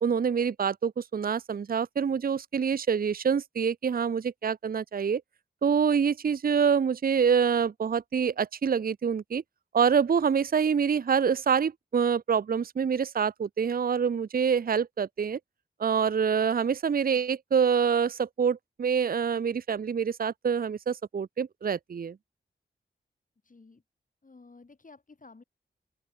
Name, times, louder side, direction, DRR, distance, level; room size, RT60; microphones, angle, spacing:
voice 1, 0.0-5.2 5.6-9.4 9.7-15.4 15.8-22.2, right 6 dB, 50° right, 0.6 m, -26 dB
voice 2, 23.4-23.8 24.2-25.4, left 3 dB, 45° left, 3.3 m, -53 dB
open air
cardioid pair, 55°, 19 cm